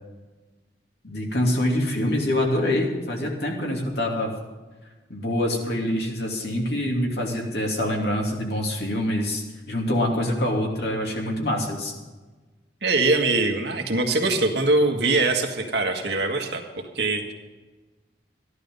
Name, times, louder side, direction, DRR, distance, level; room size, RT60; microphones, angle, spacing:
voice 1, 1.0-4.3 5.1-11.9, left 1 dB, 65° left, 0 dB, 2.7 m, -25 dB
voice 2, 12.8-16.6 17.0-17.3, right 2 dB, 65° right, 3 dB, 1.7 m, -22 dB
14.0 x 11.0 x 5.4 m, 1.2 s
head